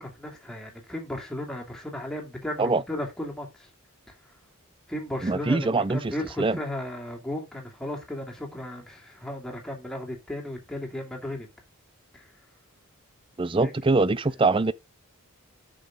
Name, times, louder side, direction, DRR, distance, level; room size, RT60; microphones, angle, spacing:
voice 1, 0.0-3.7 4.9-11.5 12.1-12.3 13.6-13.7, left 1 dB, 5° left, 2.6 m, -35 dB
voice 2, 5.2-6.1 6.4-6.6 13.4-14.7, right 3 dB, 25° right, 0.4 m, -23 dB
10.0 x 6.1 x 3.8 m
head